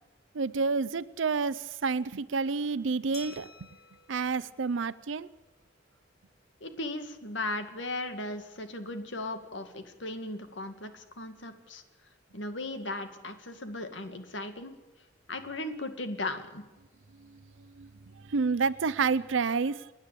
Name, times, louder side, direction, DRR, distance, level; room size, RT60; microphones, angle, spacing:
voice 1, 0.3-3.5 4.1-5.3 17.8-17.9 18.3-19.8, right 4 dB, 85° right, 16 dB, 0.6 m, -29 dB
Glass, 3.1-5.6, left 5 dB, 55° left, 2.7 m, -52 dB
voice 2, 6.6-11.8 12.3-14.7 15.3-16.6, left 2 dB, 75° left, 8 dB, 2.2 m, -37 dB
30.0 x 10.5 x 8.4 m, 1.1 s
head